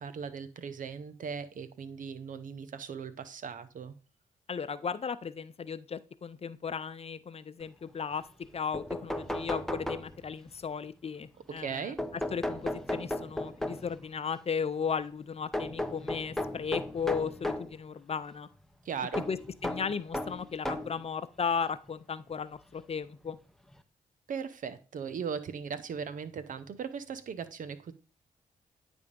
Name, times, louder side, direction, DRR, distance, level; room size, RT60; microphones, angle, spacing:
voice 1, 0.0-3.9 11.6-12.0 18.8-19.2 24.3-27.9, right 6 dB, 65° right, 0.8 m, -38 dB
voice 2, 4.5-8.2 8.5-11.9 12.3-18.5 19.3-19.4 19.6-23.4, left 6 dB, 45° left, 0.6 m, -35 dB
sound 1, 8.4-8.5 8.7-10.5 12.0-14.0 15.5-17.7 19.1-21.0 21.9-22.0 23.3-23.4 23.7-23.8, left 1 dB, 5° left, 0.8 m, -35 dB
9.5 x 3.5 x 5.3 m
supercardioid pair, 50°, 15 cm